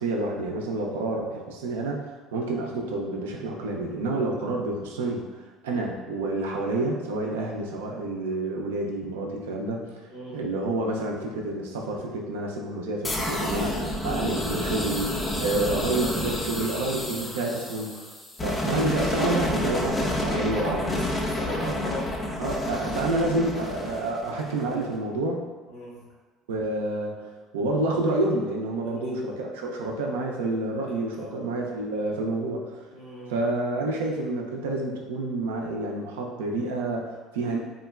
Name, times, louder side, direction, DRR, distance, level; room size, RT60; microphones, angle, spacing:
voice 1, 0.0-9.9 10.3-18.1 18.4-20.9 21.6-21.8 22.4-25.4 26.5-27.3 27.5-32.8 33.3-37.6, right 2 dB, 85° right, 0 dB, 0.4 m, -29 dB
voice 2, 10.1-10.4 17.1-17.3 20.1-22.1 25.7-26.0 29.0-29.2 31.2-31.3 32.9-33.3, left 1 dB, 75° left, -8 dB, 1.2 m, -37 dB
sound 1, 13.0-24.8, left 1 dB, 25° left, 0.5 m, -29 dB
3.6 x 2.1 x 2.3 m, 1.4 s
hypercardioid pair, 70°, 0 cm